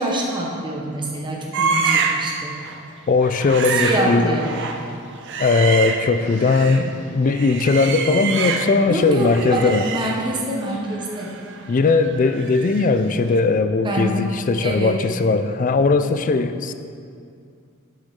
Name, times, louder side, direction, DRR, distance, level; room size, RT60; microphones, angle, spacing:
voice 1, 0.0-2.5 3.7-4.6 8.9-11.3 13.8-14.2 14.6-15.0, right 1 dB, 20° right, -2 dB, 1.0 m, -25 dB
sound 1, 1.5-2.3 2.6-2.8 3.2-6.9 7.2-8.9 9.2-13.0 13.2-13.4, right 5 dB, 55° right, 0.6 m, -27 dB
voice 2, 3.1-4.4 5.4-9.8 11.7-16.7, left 3 dB, 35° left, 10 dB, 0.4 m, -19 dB
11.5 x 6.2 x 3.7 m, 2.4 s
head